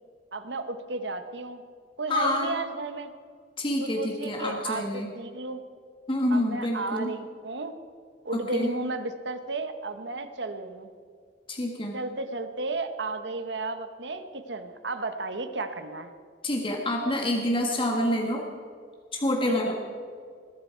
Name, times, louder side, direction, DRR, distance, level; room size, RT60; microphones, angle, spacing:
voice 1, 0.3-1.6 2.0-3.1 3.8-5.6 6.3-7.7 8.2-10.9 11.9-16.1 19.5-19.7, right 2 dB, 75° right, 9 dB, 1.2 m, -33 dB
voice 2, 2.1-2.5 3.6-5.1 6.1-7.1 8.5-8.7 11.5-12.0 16.4-18.4 19.1-19.7, left 1 dB, 30° left, 1 dB, 1.6 m, -27 dB
20.5 x 12.5 x 4.6 m, 2.1 s
head